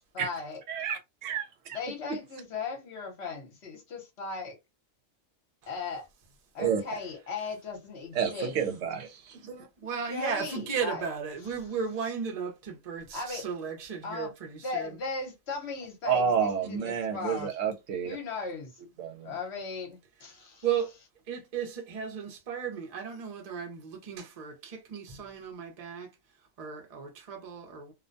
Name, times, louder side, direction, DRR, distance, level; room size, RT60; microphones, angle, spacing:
voice 1, 0.1-0.6 1.7-4.6 5.7-6.1 6.5-8.5 10.1-11.0 13.1-13.4 14.0-14.3 14.6-17.5 18.0-18.8 19.2-20.6, left 4 dB, 55° left, 1.1 m, -37 dB
voice 2, 0.7-1.8 2.1-2.2 6.6-6.8 8.1-9.7 16.0-18.2 19.0-19.3, right 7 dB, 70° right, 0.9 m, -30 dB
voice 3, 9.6-15.0 20.3-21.0 21.3-26.1 26.4-27.9, right 7 dB, 40° right, 0.6 m, -35 dB
2.4 x 2.1 x 2.5 m
omnidirectional pair, 1.4 m